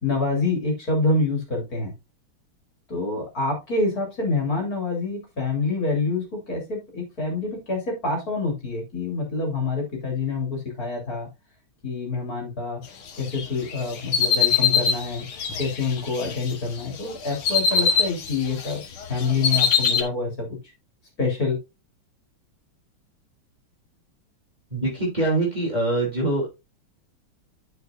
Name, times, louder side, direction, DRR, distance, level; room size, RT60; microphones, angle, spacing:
voice 1, 0.0-1.9 2.9-11.3 11.8-12.8 13.2-15.3 15.6-18.8 19.1-20.5 21.2-21.6, left 3 dB, 40° left, 0 dB, 3.8 m, -26 dB
sound 1, 13.3-16.5 16.9-18.7 19.0-20.0, left 6 dB, 75° left, 2.3 m, -23 dB
voice 2, 24.7-26.5, right 2 dB, 20° right, -3 dB, 3.1 m, -24 dB
10.5 x 6.8 x 2.6 m, 0.25 s
omnidirectional pair, 2.4 m